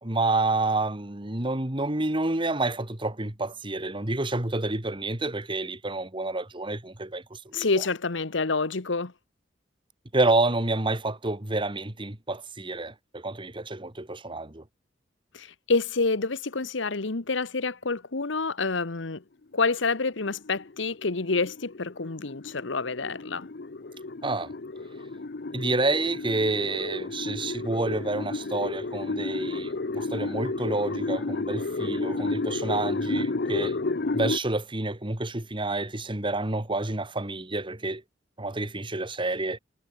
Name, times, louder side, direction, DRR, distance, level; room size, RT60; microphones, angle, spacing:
voice 1, 0.0-7.7 10.1-14.6 24.2-24.5 25.5-33.8 34.1-38.0 38.4-39.6, right 2 dB, 25° right, 1.9 m, -29 dB
voice 2, 7.5-9.1 15.3-19.2 19.5-23.5, left 3 dB, 90° left, 1.2 m, -28 dB
sound 1, 20.1-34.4, left 3 dB, 60° left, 0.8 m, -32 dB
head